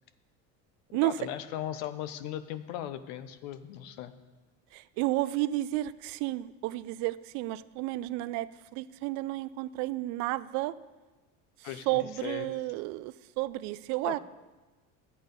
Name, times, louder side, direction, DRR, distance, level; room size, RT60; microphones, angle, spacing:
voice 1, 0.9-4.1 11.6-12.6 14.0-14.2, left 11 dB, 90° left, 12 dB, 0.8 m, -38 dB
voice 2, 4.7-10.7 11.9-14.2, right 17 dB, 65° right, 17 dB, 0.5 m, -32 dB
12.0 x 8.6 x 5.3 m, 1.2 s
cardioid pair, 150°, 30 cm